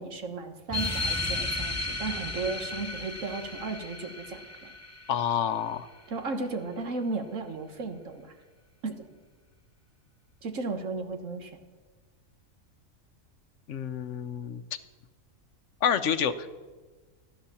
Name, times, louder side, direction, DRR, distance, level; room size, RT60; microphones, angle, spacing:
voice 1, 0.0-4.7 6.1-8.3 8.8-9.1 10.4-11.6, right 3 dB, 70° right, 7 dB, 1.7 m, -35 dB
sound 1, 0.7-5.7, left 2 dB, 15° left, 0.8 m, -34 dB
voice 2, 5.1-5.9 13.7-14.6 15.8-16.5, left 8 dB, 65° left, 12 dB, 1.0 m, -28 dB
15.0 x 11.0 x 7.0 m, 1.3 s
omnidirectional pair, 1.4 m